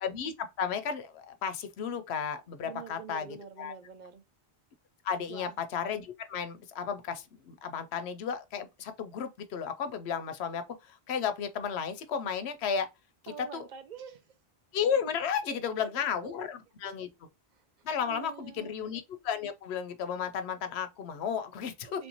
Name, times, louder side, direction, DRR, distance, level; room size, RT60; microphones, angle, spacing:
voice 1, 0.0-3.3 3.6-3.7 5.0-12.9 13.2-13.6 14.7-17.1 17.8-22.0, left 7 dB, 80° left, 0.8 m, -33 dB
voice 2, 2.7-4.2 5.3-5.5 13.3-14.3 15.5-16.4 16.8-16.9 17.5-17.6 18.0-18.7 21.8-22.1, right 7 dB, 55° right, 0.6 m, -46 dB
3.3 x 2.6 x 2.9 m
omnidirectional pair, 1.1 m